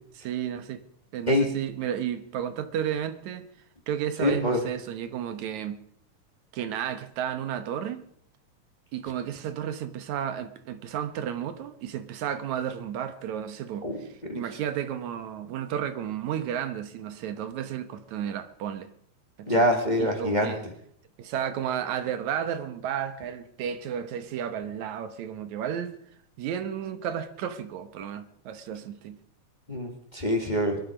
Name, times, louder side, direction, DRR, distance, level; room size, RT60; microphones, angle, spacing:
voice 1, 0.2-0.8 1.1-3.5 3.9-5.8 6.5-8.0 8.9-14.1 14.3-18.9 19.4-19.7 20.0-20.7 21.2-26.0 26.4-29.2 30.4-30.5, right 9 dB, 80° right, 2.4 m, -32 dB
voice 2, 4.2-4.6 13.8-14.0 14.3-14.4 19.5-20.5 29.7-30.8, left 1 dB, 20° left, 1.7 m, -25 dB
22.0 x 12.0 x 5.1 m
omnidirectional pair, 3.3 m